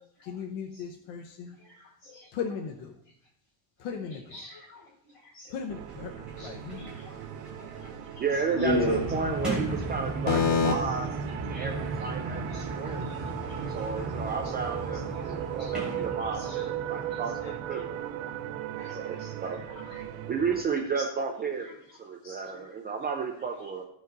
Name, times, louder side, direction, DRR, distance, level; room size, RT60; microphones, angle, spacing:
voice 1, 0.2-1.6 2.3-2.9 3.8-4.4 5.5-6.9 10.3-10.7 20.0-20.2, left 6 dB, 75° left, 4 dB, 1.0 m, -32 dB
voice 2, 1.6-2.6 3.9-4.8 5.2-5.6 6.4-7.1 7.5-9.2 9.8-10.6 11.5-11.7 12.0-12.2 12.5-13.6 13.9-14.1 14.4-14.5 15.1-16.6 17.0-18.4 18.8-20.0 20.4-20.5 20.9-21.0 21.6-21.8 22.2-22.6 23.6-23.7, left 1 dB, 40° left, -4 dB, 4.3 m, -38 dB
Sliding door, 5.4-5.5 5.8-10.8 11.7-16.7, right 1 dB, ahead, 3.6 m, -43 dB
sound 1, 5.7-20.6, right 11 dB, 80° right, 0.9 m, -38 dB
voice 3, 8.2-10.4 10.6-11.1 11.3-12.4 12.7-13.2 13.7-17.9 18.9-19.6 20.3-23.8, right 5 dB, 20° right, 3 dB, 0.4 m, -32 dB
sound 2, 8.6-18.7, right 3 dB, 50° right, 2.1 m, -36 dB
15.0 x 5.2 x 3.9 m, 0.73 s
cardioid pair, 165°, 49 cm